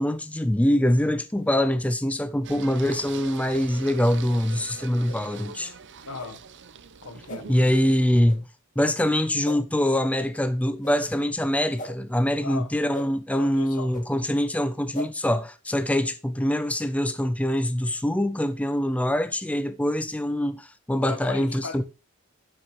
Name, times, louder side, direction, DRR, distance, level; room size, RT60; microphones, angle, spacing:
voice 1, 0.0-5.7 7.5-8.4 8.8-21.8, left 1 dB, 5° left, 0.6 m, -24 dB
Singing, 2.4-8.2, right 5 dB, 55° right, 0.7 m, -42 dB
sound 1, 5.0-5.2 6.2-6.3 7.3-7.4 8.3-8.4 9.4-9.6 10.8-11.0 11.8-11.9 12.9-13.1 13.9-14.0 14.9-15.1, left 1 dB, 35° left, 2.5 m, -37 dB
voice 2, 6.0-6.4 7.0-7.8 12.4-13.0 13.3-13.9 21.0-21.8, left 4 dB, 75° left, 1.3 m, -38 dB
11.5 x 6.4 x 3.1 m
head